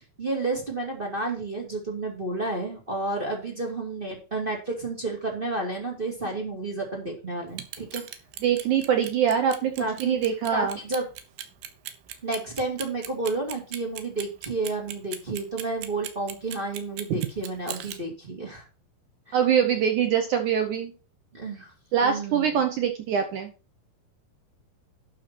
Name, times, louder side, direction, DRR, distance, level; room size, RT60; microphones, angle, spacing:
voice 1, 0.2-8.0 9.8-10.2 10.5-11.1 12.2-18.6 19.3-19.4 21.3-21.7 22.0-22.6, right 2 dB, 20° right, -1 dB, 1.5 m, -31 dB
Clock, 7.5-18.0, right 11 dB, 85° right, 3.1 m, -38 dB
voice 2, 8.4-10.8 17.1-17.2 19.3-20.9 21.9-23.5, right 8 dB, 70° right, 6 dB, 2.0 m, -24 dB
12.0 x 4.3 x 6.0 m, 0.33 s
omnidirectional pair, 4.4 m